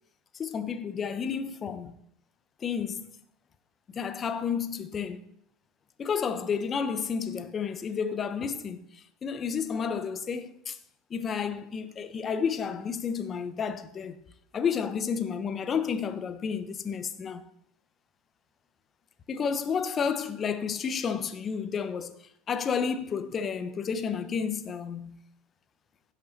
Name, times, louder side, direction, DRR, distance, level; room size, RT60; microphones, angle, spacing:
voice 1, 0.3-2.0 2.6-3.1 3.9-5.2 6.0-10.8 11.1-14.2 14.5-17.4 19.3-25.2, left 6 dB, 35° left, 1.0 m, -31 dB
16.0 x 5.6 x 4.2 m
hypercardioid pair, 80°, 0 cm